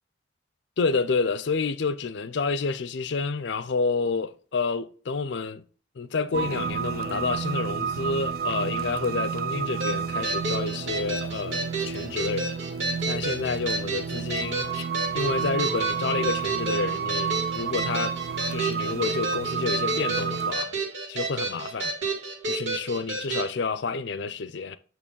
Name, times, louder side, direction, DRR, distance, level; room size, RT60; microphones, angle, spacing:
voice 1, 0.8-5.6 6.0-12.5 13.1-14.9 15.1-18.2 18.5-20.7 21.1-21.9 22.5-24.8, left 4 dB, 60° left, 0.5 m, -29 dB
sound 1, 6.3-20.5, right 7 dB, 50° right, 0.3 m, -30 dB
sound 2, 9.8-23.5, right 2 dB, 70° right, 2.3 m, -31 dB
8.5 x 3.1 x 5.3 m
head